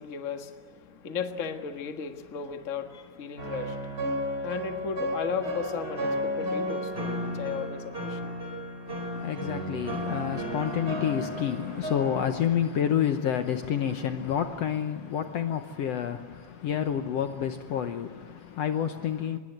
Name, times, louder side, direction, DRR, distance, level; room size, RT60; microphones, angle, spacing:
voice 1, 0.0-8.3, left 6 dB, 35° left, 1.3 m, -36 dB
sound 1, 3.4-12.2, equal, 20° right, 4.2 m, -33 dB
voice 2, 8.9-19.4, left 9 dB, 65° left, 1.8 m, -29 dB
25.0 x 21.5 x 8.0 m
omnidirectional pair, 3.6 m